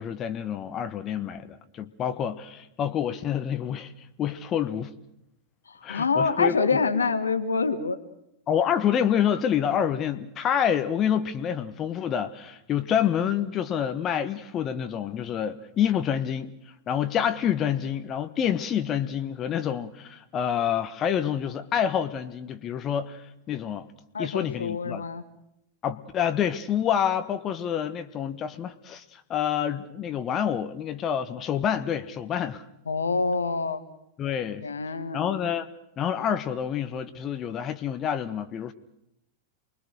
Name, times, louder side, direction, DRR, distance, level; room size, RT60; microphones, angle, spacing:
voice 1, 0.0-3.9 4.2-4.9 5.8-6.7 8.5-16.5 16.9-23.9 24.2-25.0 25.8-32.7 34.2-34.6 35.1-35.7 36.0-38.7, left 9 dB, 30° left, 1.4 m, -27 dB
voice 2, 5.7-8.0 24.1-25.2 32.9-33.8 34.6-35.3, left 4 dB, 75° left, 1.6 m, -26 dB
28.5 x 22.0 x 6.4 m
figure-of-eight pair, 90°, 0 cm